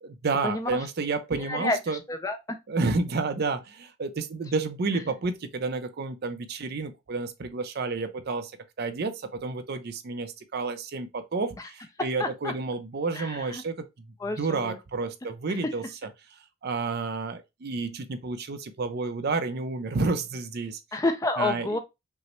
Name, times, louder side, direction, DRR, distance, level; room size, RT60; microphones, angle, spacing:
voice 1, 0.0-2.0 2.7-8.5 8.8-15.8 16.6-20.8 21.4-21.8, right 3 dB, 45° right, 0.5 m, -30 dB
voice 2, 1.5-2.6 12.2-12.5 13.1-13.6 14.2-14.8 20.9-21.8, left 2 dB, 15° left, 0.3 m, -29 dB
5.4 x 2.0 x 3.0 m
head